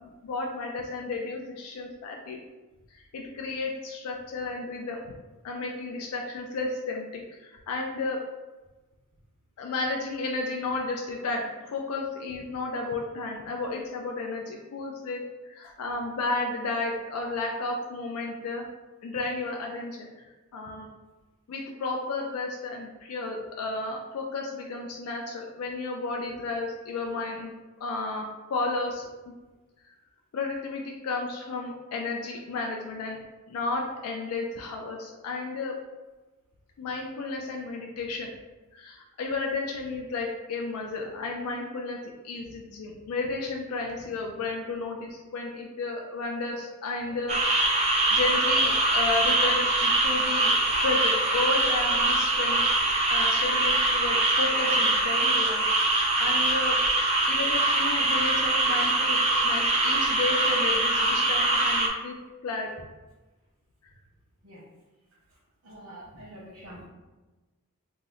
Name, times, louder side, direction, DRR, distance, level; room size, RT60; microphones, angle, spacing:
voice 1, 0.0-2.4 2.9-5.0 5.4-8.2 9.6-18.7 19.0-20.2 20.5-20.9 21.5-27.5 27.8-29.1 30.3-33.2 33.5-35.8 36.8-38.3 38.7-47.8 48.1-50.5 50.8-52.6 53.1-55.6 56.2-56.8 57.3-62.2 62.4-62.7, left 3 dB, 90° left, 0 dB, 0.4 m, -32 dB
sound 1, 47.3-61.9, right 2 dB, 30° right, 0.4 m, -23 dB
voice 2, 65.6-66.9, right 1 dB, 80° right, -9 dB, 1.0 m, -45 dB
2.8 x 2.0 x 3.6 m, 1.2 s
head